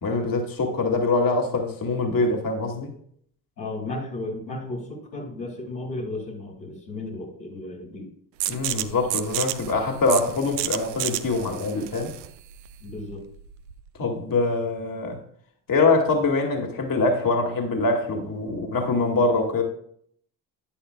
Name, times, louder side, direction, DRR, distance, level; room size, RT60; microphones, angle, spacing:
voice 1, 0.0-2.9 8.5-12.1 14.0-15.2 15.7-19.6, left 3 dB, 40° left, 2.6 m, -24 dB
voice 2, 3.6-8.1 12.8-13.2, left 2 dB, 90° left, 2.9 m, -34 dB
sound 1, 8.4-13.9, right 14 dB, 80° right, 0.7 m, -31 dB
11.5 x 9.8 x 2.4 m
hypercardioid pair, 45°, 49 cm